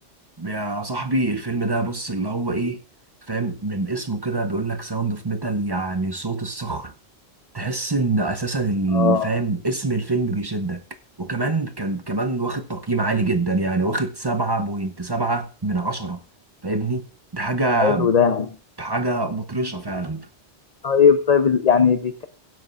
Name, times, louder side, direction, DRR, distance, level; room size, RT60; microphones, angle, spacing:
voice 1, 0.4-2.8 3.3-6.9 7.5-10.8 11.2-16.2 16.6-17.1 17.3-18.1 18.8-20.3, right 2 dB, 25° right, 0.6 m, -25 dB
voice 2, 8.9-9.3 17.8-18.5 20.8-22.3, left 6 dB, 40° left, 0.7 m, -18 dB
22.0 x 7.7 x 2.5 m
omnidirectional pair, 1.2 m